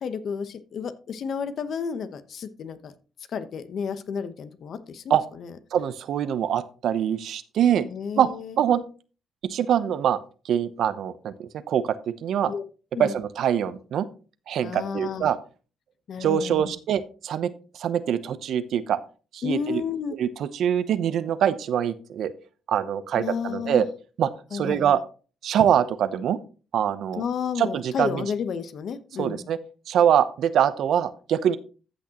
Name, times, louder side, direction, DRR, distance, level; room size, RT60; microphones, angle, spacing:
voice 1, 0.0-2.9 3.3-5.5 7.9-8.6 12.5-12.6 12.9-13.1 14.6-15.3 16.1-16.7 19.4-20.1 23.2-23.8 24.5-25.0 27.2-29.5, left 6 dB, 60° left, 11 dB, 1.0 m, -31 dB
voice 2, 5.7-7.9 8.2-8.3 8.6-8.8 9.4-10.2 10.4-12.5 13.0-14.1 14.5-15.4 16.2-19.0 19.3-19.8 20.2-22.3 22.7-23.9 24.2-25.0 25.4-26.4 26.7-27.2 27.6-28.3 29.2-29.6 29.9-31.6, right 9 dB, 70° right, 13 dB, 0.8 m, -24 dB
14.0 x 6.3 x 3.0 m, 0.36 s
cardioid pair, 90°, 0 cm